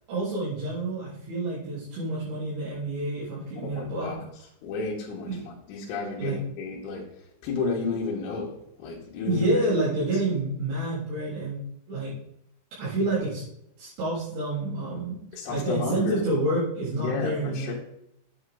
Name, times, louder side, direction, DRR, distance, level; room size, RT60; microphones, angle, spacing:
voice 1, 0.1-4.2 5.3-5.4 6.2-6.4 9.2-11.6 11.9-12.1 12.8-13.4 13.8-15.2 15.5-17.7, right 2 dB, 70° right, -9 dB, 5.6 m, -28 dB
voice 2, 3.6-4.2 4.6-7.1 7.4-8.5 8.8-9.9 15.3-16.3 17.0-17.7, left 4 dB, 75° left, -5 dB, 3.9 m, -32 dB
9.3 x 8.1 x 3.8 m, 0.76 s
omnidirectional pair, 5.9 m